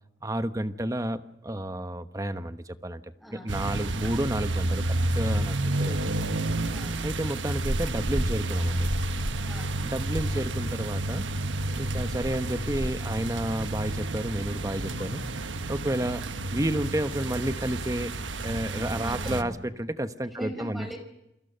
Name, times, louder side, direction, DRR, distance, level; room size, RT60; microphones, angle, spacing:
voice 1, 0.2-6.1 7.0-8.9 9.8-11.3 11.8-15.2 15.7-16.2 16.5-21.0, right 1 dB, 15° right, 10 dB, 1.0 m, -31 dB
voice 2, 3.2-4.1 6.7-7.1 9.4-10.5 19.0-19.6 20.4-21.0, equal, ahead, 5 dB, 4.8 m, -42 dB
sound 1, 3.5-19.4, right 2 dB, 85° right, 1.4 m, -30 dB
28.5 x 21.5 x 6.8 m, 0.88 s
head